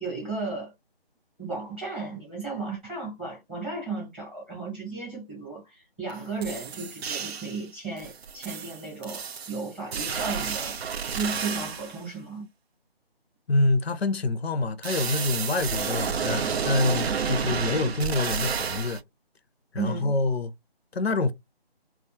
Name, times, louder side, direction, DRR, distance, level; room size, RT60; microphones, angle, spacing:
voice 1, 0.0-0.7 1.4-12.4 19.7-20.1, right 4 dB, 10° right, 0.7 m, -34 dB
sound 1, 6.1-6.2 6.4-7.6 8.0-12.0 14.8-19.0, right 6 dB, 85° right, 0.5 m, -30 dB
voice 2, 13.5-19.0 19.7-20.5 20.9-21.3, left 3 dB, 90° left, 0.6 m, -26 dB
2.3 x 2.0 x 2.8 m
figure-of-eight pair, 160°, 31 cm